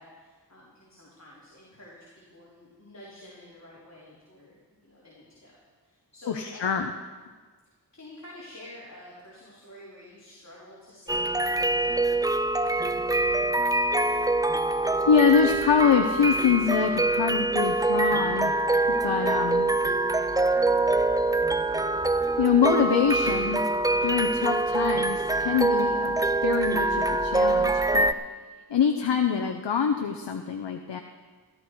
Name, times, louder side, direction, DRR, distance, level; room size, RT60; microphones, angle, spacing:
voice 1, 0.0-5.5 5.8-6.9 7.9-13.2, left 1 dB, 40° left, -7 dB, 3.8 m, -49 dB
voice 2, 6.3-6.9 15.1-18.6 18.9-19.7 22.4-23.6 24.0-28.1 28.7-31.0, left 7 dB, 85° left, 5 dB, 0.8 m, -25 dB
sound 1, 11.1-28.1, right 2 dB, 10° right, 0.4 m, -24 dB
15.0 x 13.5 x 4.7 m, 1.4 s
wide cardioid pair, 55°, 41 cm